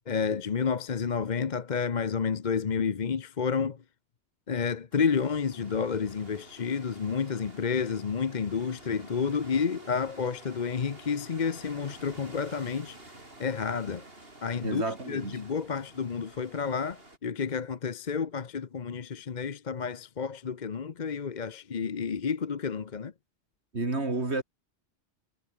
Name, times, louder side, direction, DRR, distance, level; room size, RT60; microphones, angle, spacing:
voice 1, 0.1-3.8 4.5-13.0 13.4-14.0 14.4-23.1, left 6 dB, 45° left, 1.0 m, -30 dB
sound 1, 4.9-17.2, right 2 dB, 60° right, 5.5 m, -50 dB
voice 2, 14.6-15.4 23.7-24.4, right 3 dB, 85° right, 3.6 m, -30 dB
omnidirectional pair, 1.1 m